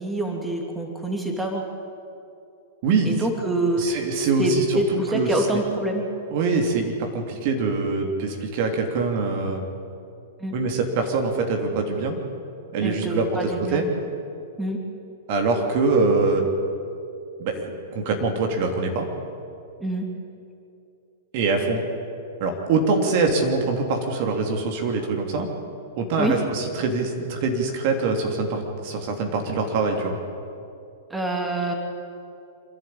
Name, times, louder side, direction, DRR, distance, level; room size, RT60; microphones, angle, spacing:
voice 1, 0.0-1.6 3.1-4.0 4.4-6.0 10.4-10.5 12.8-13.8 14.6-14.8 19.8-20.1 26.2-26.4 31.1-31.7, right 1 dB, 5° right, 1 dB, 2.7 m, -26 dB
voice 2, 2.8-3.2 3.8-5.6 6.3-9.6 10.5-12.2 12.7-13.9 15.3-16.5 17.4-19.1 21.3-21.9 22.4-25.5 26.0-30.2, right 3 dB, 50° right, 3 dB, 3.1 m, -24 dB
27.0 x 11.5 x 8.8 m, 2.6 s
hypercardioid pair, 105°, 0 cm